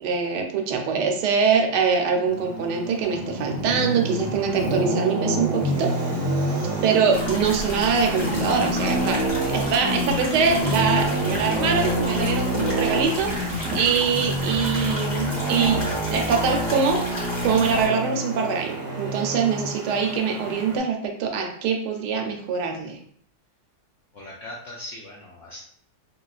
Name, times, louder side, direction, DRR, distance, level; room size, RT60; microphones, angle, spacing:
voice 1, 0.0-5.9 6.8-15.8 16.1-17.0 17.4-23.0, right 6 dB, 80° right, 2 dB, 1.2 m, -23 dB
Traffic noise roadway noise, 2.3-20.8, right 1 dB, 60° right, 0.9 m, -27 dB
sound 1, 7.1-17.9, left 1 dB, 40° left, 0.7 m, -33 dB
voice 2, 24.1-25.6, left 1 dB, 75° left, -3 dB, 0.7 m, -39 dB
3.0 x 2.8 x 2.3 m, 0.63 s
omnidirectional pair, 1.8 m